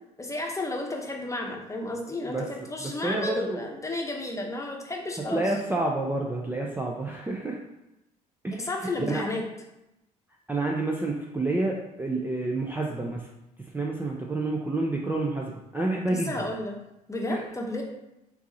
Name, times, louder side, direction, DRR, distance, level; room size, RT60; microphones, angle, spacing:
voice 1, 0.2-5.4 8.6-9.4 16.1-16.7 17.1-17.8, left 2 dB, 15° left, 1 dB, 1.0 m, -32 dB
voice 2, 2.3-3.7 5.3-7.6 8.4-9.2 10.5-13.3 13.6-16.5 17.3-17.4, right 2 dB, 10° right, -1 dB, 0.6 m, -29 dB
4.6 x 2.7 x 4.0 m, 0.91 s
hypercardioid pair, 60°, 20 cm